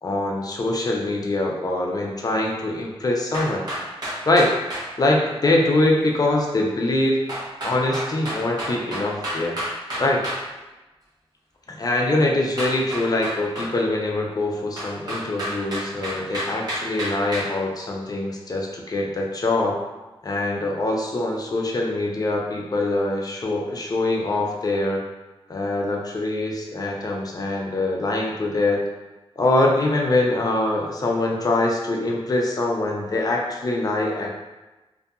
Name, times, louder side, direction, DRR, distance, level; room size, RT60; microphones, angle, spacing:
voice 1, 0.0-3.7 4.2-4.5 5.0-7.2 7.6-9.6 10.0-10.2 11.8-19.8 20.2-25.0 25.5-28.8 29.4-34.4, left 2 dB, 40° left, 0 dB, 0.4 m, -23 dB
sound 1, 3.3-4.9 7.3-10.4 12.6-13.7 14.8-17.5, equal, 40° right, 0.9 m, -30 dB
2.6 x 2.5 x 2.2 m, 1.1 s
wide cardioid pair, 95°, 10 cm